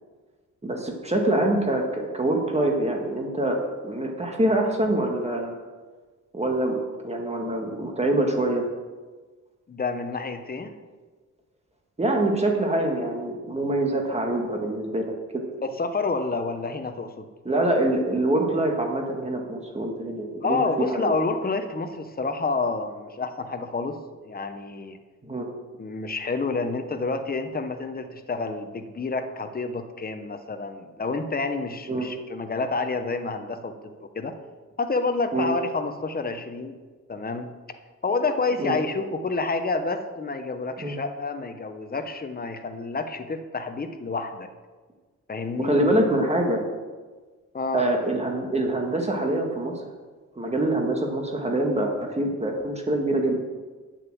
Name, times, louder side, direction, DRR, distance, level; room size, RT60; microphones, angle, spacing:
voice 1, 0.6-3.6 3.8-5.6 6.3-8.7 12.0-15.4 17.5-21.1 25.2-25.5 31.9-32.1 35.3-35.5 38.6-38.8 40.8-41.0 45.6-46.6 47.7-49.7 50.4-53.4, right 1 dB, 20° right, 1 dB, 1.7 m, -25 dB
voice 2, 9.7-10.7 15.6-17.2 20.4-25.0 25.8-34.3 34.8-36.8 37.1-37.5 38.0-44.5 45.3-45.8 47.5-47.9, left 3 dB, 30° left, 7 dB, 1.0 m, -29 dB
9.0 x 7.5 x 7.6 m, 1.4 s
cardioid pair, 115°, 31 cm